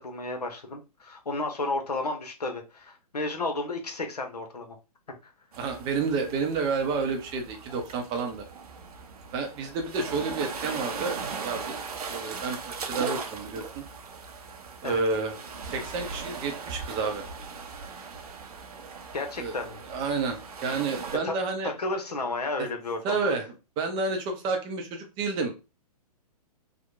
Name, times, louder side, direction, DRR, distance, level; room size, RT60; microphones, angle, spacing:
voice 1, 0.0-4.8 5.2-5.3 14.8-15.0 19.1-19.8 21.2-21.4 21.6-23.4, left 2 dB, 80° left, 0.7 m, -32 dB
sound 1, 5.5-21.2, right 5 dB, 70° right, 0.5 m, -39 dB
voice 2, 5.6-8.4 9.3-11.2 11.4-11.7 12.1-13.8 14.8-15.3 15.6-17.3 19.4-19.6 19.9-21.7 23.0-23.5 23.8-25.5, right 4 dB, 20° right, 0.5 m, -30 dB
2.8 x 2.0 x 2.3 m
figure-of-eight pair, 120°, 20 cm